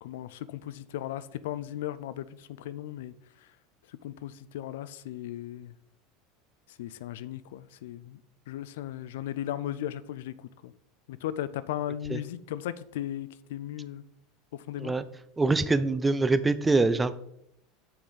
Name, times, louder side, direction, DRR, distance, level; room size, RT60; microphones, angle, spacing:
voice 1, 0.0-3.1 4.0-5.7 6.8-8.2 8.5-10.3 10.6-10.7 11.1-14.0 14.7-14.9, left 12 dB, 80° left, 0.4 m, -36 dB
voice 2, 15.4-17.1, right 3 dB, 15° right, 0.4 m, -24 dB
6.1 x 6.0 x 4.0 m
supercardioid pair, 105°, 0 cm